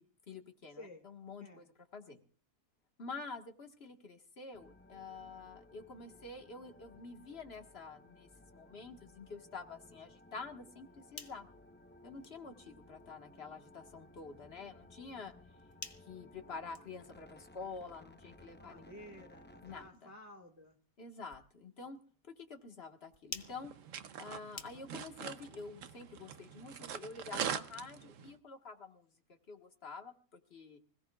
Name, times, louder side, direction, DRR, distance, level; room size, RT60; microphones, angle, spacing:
voice 1, 0.0-1.6 1.9-2.2 3.0-11.5 12.0-15.3 16.0-18.9 19.6-20.1 21.0-23.7 24.2-29.1 29.5-30.1 30.5-30.8, left 4 dB, 45° left, 4 dB, 1.8 m, -48 dB
voice 2, 0.7-1.1 1.4-1.7 18.6-20.8, left 1 dB, 10° right, 3 dB, 1.6 m, -53 dB
sound 1, 4.5-19.9, left 2 dB, 10° left, 0.5 m, -59 dB
sound 2, 11.0-25.2, left 3 dB, 25° left, 0.9 m, -55 dB
sound 3, 23.4-28.4, right 8 dB, 60° right, 1.1 m, -43 dB
25.5 x 17.0 x 2.4 m, 0.43 s
omnidirectional pair, 1.6 m